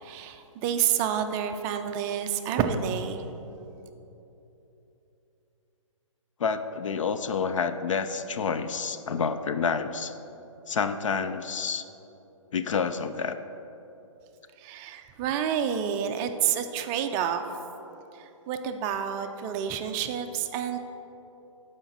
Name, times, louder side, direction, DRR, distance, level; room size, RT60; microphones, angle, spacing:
voice 1, 0.0-3.2 14.6-17.4 18.1-20.8, right 8 dB, 20° right, 7 dB, 0.3 m, -29 dB
voice 2, 6.4-10.2 10.7-11.8 12.5-13.4, left 6 dB, 70° left, 10 dB, 0.5 m, -28 dB
12.0 x 5.0 x 4.0 m, 3.0 s
hypercardioid pair, 140°, 17 cm